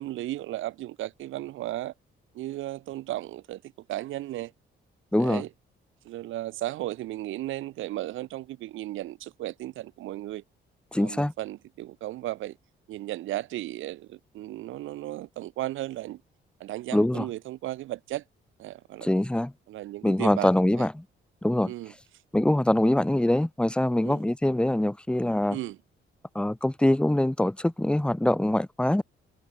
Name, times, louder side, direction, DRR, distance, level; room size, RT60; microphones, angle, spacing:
voice 1, 0.0-1.9 2.3-4.5 5.2-5.5 6.0-10.4 11.0-12.6 12.9-16.2 16.6-18.2 18.6-19.1 19.7-20.5 20.8-20.9 21.6-21.9 24.0-24.2 25.5-25.8, right 15 dB, 80° right, 1.0 m, -35 dB
voice 2, 5.1-5.4 10.9-11.3 16.9-17.3 19.0-19.5 20.0-21.0 21.4-21.7 22.3-25.6 26.3-29.0, left 1 dB, 5° left, 1.0 m, -24 dB
cardioid pair, 90°, 20 cm